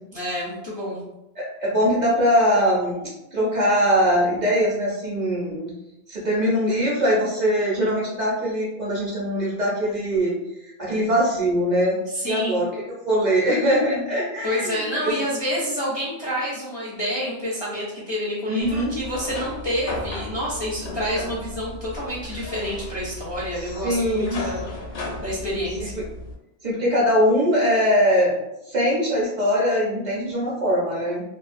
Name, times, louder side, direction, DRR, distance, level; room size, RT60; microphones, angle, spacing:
voice 1, 0.1-1.0 12.1-12.6 14.4-24.7 25.2-25.9, equal, 35° left, -7 dB, 0.4 m, -28 dB
voice 2, 1.4-5.7 6.1-10.3 10.6-12.7 13.0-15.1 18.5-19.0 23.6-24.5 25.8-26.0 26.6-28.4 28.7-31.2, equal, 50° right, -5 dB, 0.7 m, -22 dB
sound 1, 18.6-26.4, left 2 dB, 70° left, 0.8 m, -35 dB
2.4 x 2.2 x 2.4 m, 0.93 s
omnidirectional pair, 1.1 m